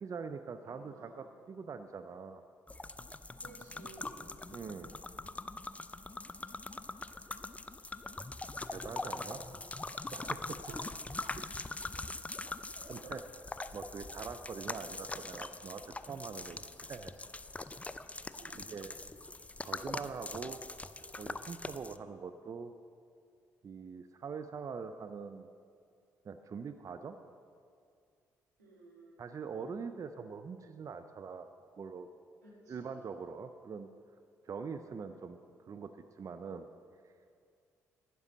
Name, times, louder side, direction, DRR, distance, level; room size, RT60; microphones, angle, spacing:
voice 1, 0.0-2.4 4.5-4.9 8.7-9.4 10.1-10.6 11.6-11.7 12.9-13.2 13.7-17.1 18.4-19.0 19.6-20.7 21.2-22.7 23.6-25.5 26.2-27.2 29.2-31.5 31.8-32.1 32.7-33.9 34.4-36.7 37.0-37.1, right 5 dB, 40° right, 9 dB, 0.5 m, -43 dB
voice 2, 0.6-1.3 3.4-4.4 7.2-7.8 9.0-9.7 10.7-11.0 12.7-13.2 18.3-19.1 28.6-29.4 32.4-33.2, right 2 dB, 90° right, -6 dB, 2.2 m, -56 dB
sound 1, 2.7-22.0, left 2 dB, 15° left, 0.4 m, -43 dB
12.0 x 9.5 x 4.0 m, 2.3 s
figure-of-eight pair, 40°, 9 cm